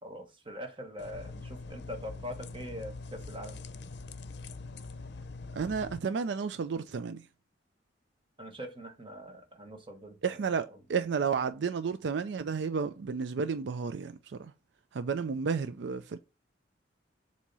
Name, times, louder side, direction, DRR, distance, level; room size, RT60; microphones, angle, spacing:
voice 1, 0.0-3.6 8.4-10.4, equal, 30° right, 1.3 m, -43 dB
sound 1, 1.0-6.0, left 3 dB, 65° left, 0.6 m, -43 dB
voice 2, 5.5-7.2 10.2-14.5 14.9-16.2, right 5 dB, 70° right, 0.4 m, -32 dB
7.3 x 2.9 x 5.4 m
head